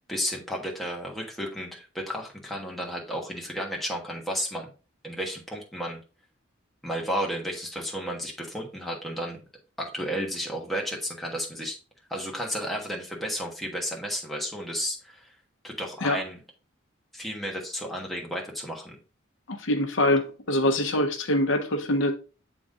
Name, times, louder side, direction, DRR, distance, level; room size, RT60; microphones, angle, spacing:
voice 1, 0.1-4.7 5.0-6.0 6.8-9.4 9.8-11.8 12.1-15.3 15.6-16.4 17.1-19.0, equal, ahead, 1.4 m, -32 dB
voice 2, 19.5-22.1, left 1 dB, 70° left, 0.8 m, -24 dB
7.4 x 3.8 x 3.7 m
head